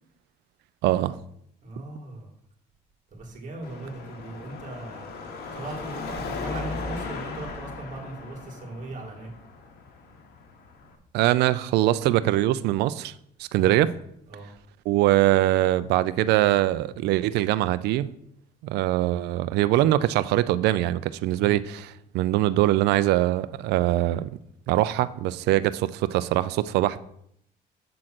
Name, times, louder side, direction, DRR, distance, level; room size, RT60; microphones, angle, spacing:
voice 1, 0.8-1.2 11.1-13.1 13.4-13.9 14.9-18.1 18.6-24.4 24.7-27.0, right 14 dB, 80° right, 0.4 m, -22 dB
voice 2, 1.6-2.3 3.1-5.1 5.5-9.3 13.5-13.8 14.3-14.5 21.3-21.5, right 2 dB, 50° right, 2.2 m, -38 dB
Car passing by / Traffic noise roadway noise / Engine, 3.6-11.0, left 3 dB, 70° left, 1.2 m, -37 dB
7.6 x 3.8 x 5.9 m
cardioid pair, 110°, 17 cm